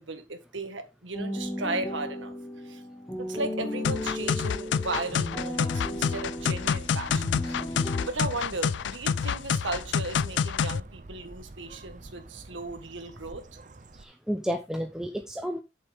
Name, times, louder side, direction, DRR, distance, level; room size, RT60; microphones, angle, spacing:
voice 1, 0.0-2.8 3.2-13.4, right 2 dB, 80° right, 1.8 m, -36 dB
sound 1, 1.1-8.1, left 1 dB, 15° left, 1.9 m, -35 dB
sound 2, 3.8-10.8, left 7 dB, 70° left, 0.4 m, -27 dB
Bird, 5.9-14.0, right 2 dB, 40° right, 0.6 m, -47 dB
voice 2, 13.9-15.6, equal, 5° right, 0.6 m, -31 dB
8.7 x 7.0 x 3.6 m
head